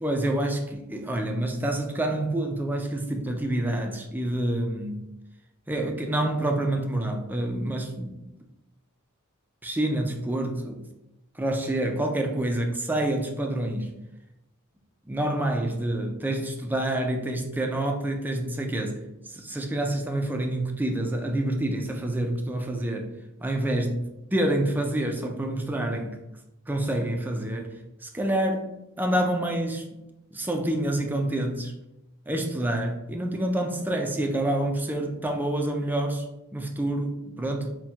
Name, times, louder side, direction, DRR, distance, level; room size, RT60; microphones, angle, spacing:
voice 1, 0.0-5.0 5.7-8.1 9.6-10.8 11.4-13.9 15.1-19.0 19.2-23.1 23.4-26.2 26.7-27.7 28.0-28.7 29.0-29.9 30.3-31.7 32.3-36.2 36.5-37.7, right 1 dB, 10° right, 0.3 m, -27 dB
4.3 x 2.2 x 3.4 m
head